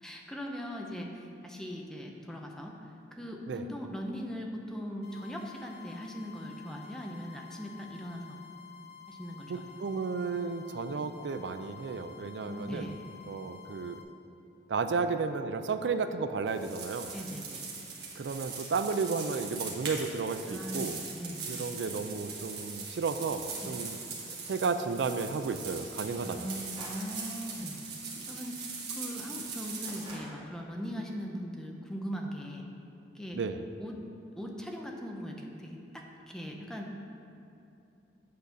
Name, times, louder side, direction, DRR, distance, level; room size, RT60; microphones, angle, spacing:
voice 1, 0.0-2.7 3.1-8.4 9.1-9.6 12.5-13.0 17.1-17.6 20.5-21.4 23.6-23.8 26.2-27.8 28.3-32.7 33.1-33.4 33.8-34.0 34.4-37.0, equal, 5° left, 0 dB, 0.7 m, -40 dB
sound 1, 5.0-14.0, left 7 dB, 65° left, 1.0 m, -51 dB
voice 2, 9.5-13.0 13.3-14.0 14.7-17.1 18.2-21.0 21.5-24.0 24.5-26.5 33.3-33.6, right 4 dB, 80° right, 9 dB, 0.4 m, -33 dB
sound 2, 16.5-30.1, right 4 dB, 65° right, 1.5 m, -41 dB
Gunshot gunfire, 26.8-27.2 30.0-30.5, right 1 dB, 30° right, 1.7 m, -47 dB
8.6 x 4.0 x 6.8 m, 2.7 s
head